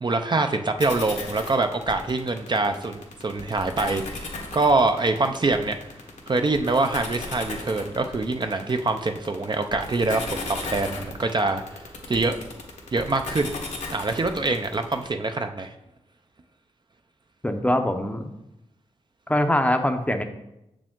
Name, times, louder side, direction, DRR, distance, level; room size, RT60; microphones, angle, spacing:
voice 1, 0.0-5.7 6.3-11.8 12.1-12.4 12.9-13.5 13.9-15.7, right 3 dB, 40° right, 6 dB, 0.5 m, -24 dB
sound 1, 0.8-15.0, left 3 dB, 85° left, 1.3 m, -36 dB
voice 2, 17.4-18.3 19.3-20.2, left 1 dB, 10° left, 7 dB, 0.6 m, -23 dB
6.8 x 5.0 x 3.7 m, 0.87 s
cardioid pair, 70°, 12 cm